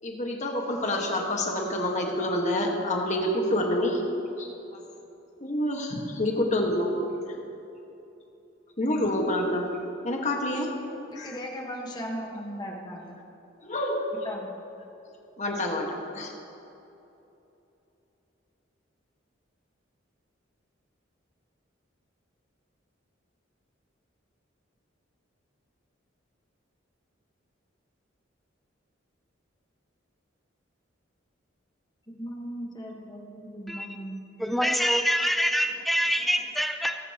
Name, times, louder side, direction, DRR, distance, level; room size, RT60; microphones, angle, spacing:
voice 1, 0.0-4.0 4.4-4.8 5.4-7.1 8.8-9.6 10.0-10.7 11.1-11.3 13.6-14.1 15.4-16.3, left 1 dB, 35° left, 1 dB, 1.5 m, -27 dB
voice 2, 11.1-13.1 14.2-14.6 32.1-34.2, equal, 20° left, 0 dB, 1.3 m, -37 dB
voice 3, 34.4-37.0, equal, ahead, 6 dB, 0.5 m, -25 dB
19.0 x 9.1 x 2.9 m, 2.9 s
head